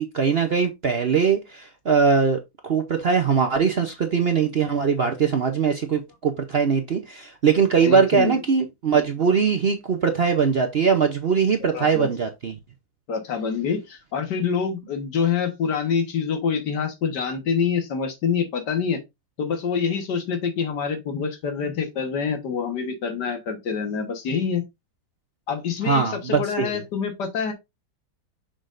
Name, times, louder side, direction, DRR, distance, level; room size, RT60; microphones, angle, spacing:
voice 1, 0.0-12.6 25.8-26.7, right 6 dB, 50° right, 0.7 m, -21 dB
voice 2, 7.8-8.4 11.7-12.1 13.1-19.0 19.4-24.6 25.5-27.5, left 6 dB, 75° left, 1.9 m, -26 dB
6.4 x 6.1 x 2.5 m
omnidirectional pair, 1.9 m